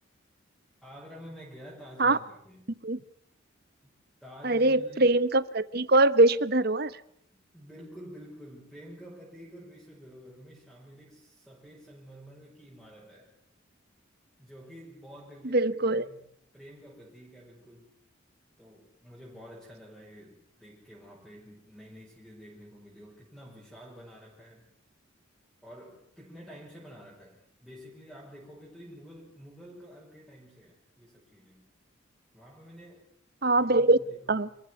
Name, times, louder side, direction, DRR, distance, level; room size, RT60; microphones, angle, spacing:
voice 1, 0.8-2.6 3.8-3.9 4.2-5.2 7.5-13.3 14.4-16.3 16.5-17.9 18.6-24.7 25.6-31.6 32.3-33.1 33.5-34.5, equal, ahead, -6 dB, 6.2 m, -49 dB
voice 2, 4.4-6.9 15.5-16.1 33.4-34.0 34.3-34.5, right 2 dB, 50° right, 16 dB, 1.1 m, -22 dB
28.0 x 15.0 x 9.9 m, 0.70 s
head